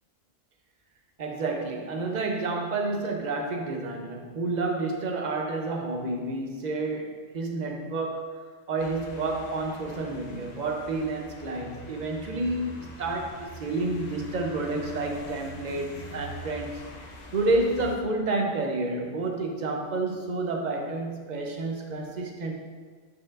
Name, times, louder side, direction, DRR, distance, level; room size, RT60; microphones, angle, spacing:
voice 1, 1.2-8.4 8.7-16.8 17.3-22.5, right 2 dB, 45° right, 2 dB, 0.6 m, -30 dB
sound 1, 8.8-18.0, equal, 50° left, 0.5 m, -44 dB
8.8 x 4.5 x 2.5 m, 1.5 s
omnidirectional pair, 1.4 m